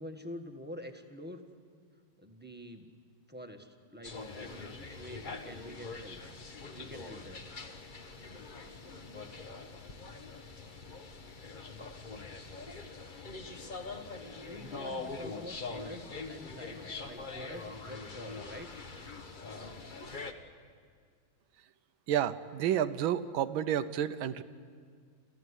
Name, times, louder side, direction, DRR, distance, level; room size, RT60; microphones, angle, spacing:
voice 1, 0.0-1.4 2.2-2.9 3.3-6.2 6.7-7.5 14.4-18.7, equal, 5° right, 4 dB, 1.3 m, -47 dB
sound 1, 4.0-20.3, left 3 dB, 30° left, 1.1 m, -43 dB
voice 2, 22.1-24.4, right 10 dB, 90° right, 12 dB, 1.7 m, -30 dB
29.5 x 14.5 x 9.8 m, 2.1 s
omnidirectional pair, 2.1 m